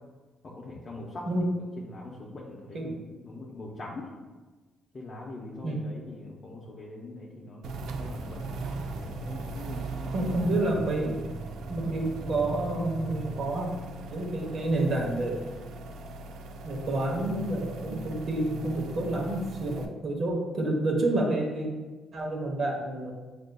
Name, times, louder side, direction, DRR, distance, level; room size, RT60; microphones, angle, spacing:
voice 1, 0.4-1.5 1.8-4.1 4.9-8.4 9.0-10.3, left 2 dB, 40° left, -3 dB, 0.6 m, -42 dB
sound 1, 7.6-19.9, right 2 dB, 80° right, 0.3 m, -38 dB
voice 2, 10.1-11.2 11.7-13.7 14.1-15.3 16.6-21.7 22.1-23.1, right 2 dB, 55° right, 0 dB, 0.9 m, -29 dB
6.3 x 2.5 x 2.2 m, 1.3 s
cardioid pair, 90°, 0 cm